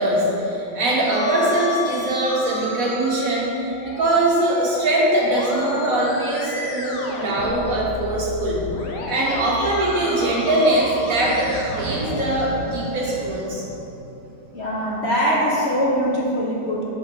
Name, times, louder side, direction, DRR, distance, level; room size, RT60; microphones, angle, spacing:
voice 1, 0.0-8.6 9.1-13.7, right 1 dB, 55° right, -4 dB, 1.3 m, -22 dB
Musical instrument, 1.1-13.1, left 3 dB, 70° left, 1.4 m, -33 dB
voice 2, 14.5-16.8, equal, 45° left, -6 dB, 1.1 m, -22 dB
6.4 x 4.2 x 6.4 m, 2.9 s
omnidirectional pair, 1.9 m